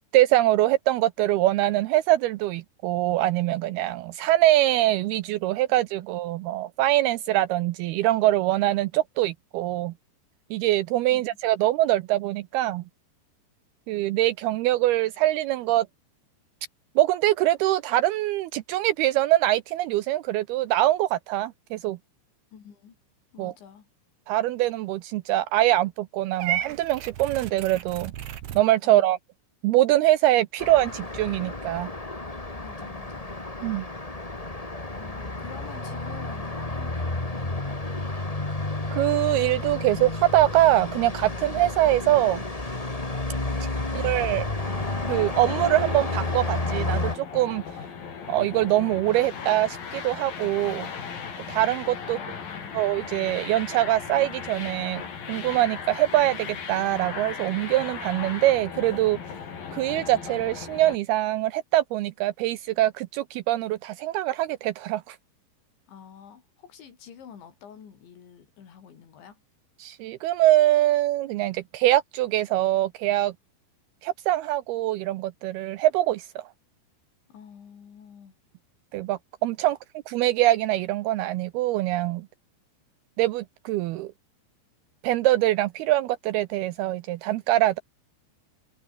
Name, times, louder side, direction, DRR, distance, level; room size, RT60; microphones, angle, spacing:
voice 1, 0.1-9.9 10.5-12.8 13.9-15.9 17.0-22.0 23.4-23.5 24.3-28.1 28.6-29.2 29.6-31.9 33.6-33.9 38.9-42.4 43.9-44.5 45.1-47.6 48.3-50.9 51.5-52.2 52.7-55.0 55.3-59.2 59.7-65.2 69.8-73.3 74.0-76.5 78.9-79.8 80.1-82.3 83.2-84.1 85.0-87.8, right 15 dB, 85° right, 2.3 m, -23 dB
voice 2, 22.5-23.0 23.3-23.9 28.8-29.1 32.6-33.3 35.0-37.8 43.5-44.3 52.1-52.8 65.9-69.4 77.3-78.3 79.7-79.8, left 7 dB, 80° left, 6.4 m, -48 dB
Purr / Meow, 26.4-28.6, right 11 dB, 65° right, 3.9 m, -32 dB
Traffic noise roadway noise, 30.6-47.1, left 2 dB, 25° left, 0.7 m, -31 dB
sound 1, 44.6-61.0, left 6 dB, 55° left, 5.6 m, -37 dB
omnidirectional pair, 5.1 m